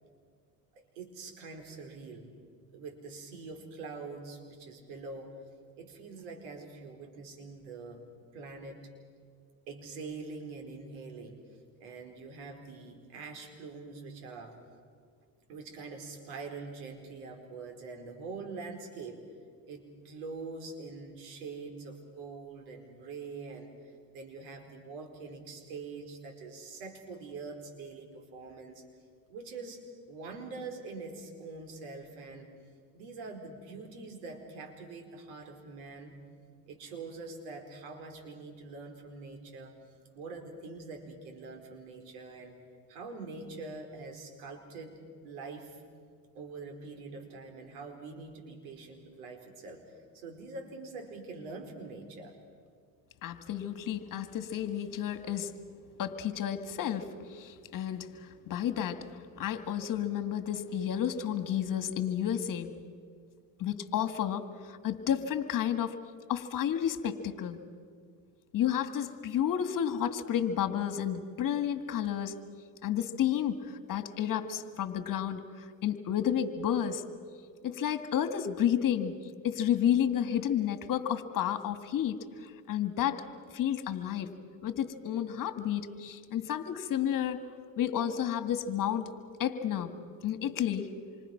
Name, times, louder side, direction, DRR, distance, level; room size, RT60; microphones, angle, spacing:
voice 1, 0.7-2.3 2.7-5.3 5.8-8.0 8.3-8.8 9.7-11.4 11.8-14.6 15.5-19.2 19.6-28.8 29.3-32.5 32.9-36.2 36.7-39.7 40.1-42.6 42.9-45.8 46.3-52.3, right 4 dB, 90° right, 4 dB, 4.6 m, -44 dB
voice 2, 53.2-55.5 56.0-59.0 59.4-62.7 63.6-66.0 66.3-67.6 68.5-72.4 72.8-77.0 77.6-79.2 79.4-83.2 83.5-84.3 84.6-87.4 87.8-89.1 89.4-89.9 90.2-90.9, left 10 dB, 50° left, 10 dB, 2.1 m, -31 dB
27.5 x 25.0 x 6.0 m, 2.1 s
supercardioid pair, 100°, 42 cm